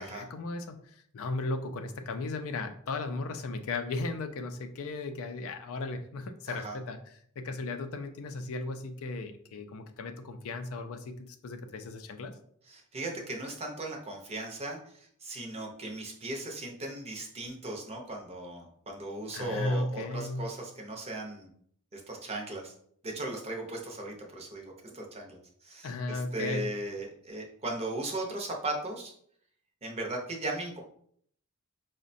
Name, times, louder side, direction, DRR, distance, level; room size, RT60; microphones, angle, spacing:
voice 1, 0.0-12.3 19.3-20.4 25.8-26.6, left 3 dB, 65° left, 7 dB, 0.4 m, -36 dB
voice 2, 12.7-21.5 21.9-22.7 23.0-29.1 29.8-30.8, right 2 dB, 30° right, 1 dB, 0.6 m, -37 dB
4.8 x 2.1 x 2.6 m, 0.63 s
head